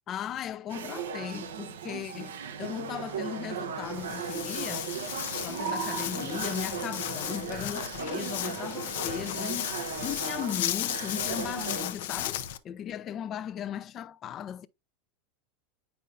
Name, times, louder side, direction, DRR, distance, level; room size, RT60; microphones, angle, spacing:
voice 1, 0.1-4.9 5.4-9.7 10.0-14.7, left 9 dB, 35° left, 0.6 m, -37 dB
sound 1, 0.7-11.9, right 6 dB, 90° right, 0.8 m, -37 dB
Walk footsteps, 3.8-12.6, left 12 dB, 75° left, 0.7 m, -35 dB
8.2 x 5.4 x 2.5 m
supercardioid pair, 120°, 0 cm